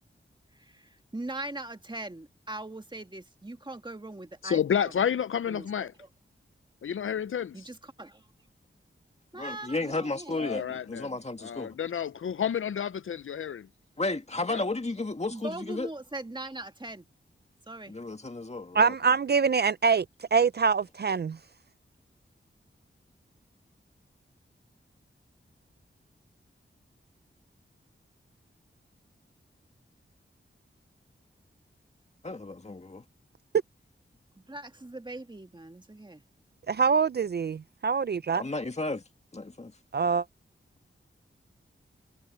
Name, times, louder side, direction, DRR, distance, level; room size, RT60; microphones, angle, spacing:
voice 1, 0.5-4.8 5.5-6.1 7.5-8.3 9.3-10.7 15.3-17.0 17.7-18.0 34.4-36.2, right 2 dB, 20° right, 1.9 m, -41 dB
voice 2, 4.4-5.9 6.8-7.6 10.3-11.1 11.4-13.7 14.5-14.6, left 8 dB, 75° left, 0.5 m, -30 dB
voice 3, 9.3-11.8 14.0-15.9 17.9-18.9 32.2-33.0 38.4-39.0 39.3-39.8, left 2 dB, 30° left, 1.9 m, -33 dB
voice 4, 18.7-20.1 20.3-21.3 36.7-38.4 39.9-40.2, right 5 dB, 50° right, 0.4 m, -24 dB
wide cardioid pair, 95°, 21 cm